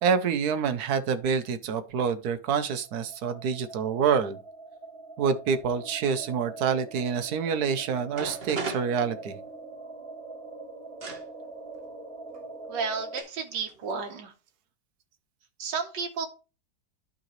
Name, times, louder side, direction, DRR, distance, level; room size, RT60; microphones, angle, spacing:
voice 1, 0.0-4.4 5.2-9.4, right 6 dB, 65° right, 1.3 m, -27 dB
sound 1, 2.7-13.2, right 3 dB, 5° left, 2.9 m, -43 dB
sound 2, 7.7-7.8 8.1-9.7 11.0-11.2 12.3-12.4 13.2-13.4 13.7-14.2, right 4 dB, 40° right, 1.1 m, -36 dB
voice 2, 12.7-14.3 15.6-16.3, right 5 dB, 85° right, 1.6 m, -32 dB
11.5 x 3.9 x 3.1 m
omnidirectional pair, 1.9 m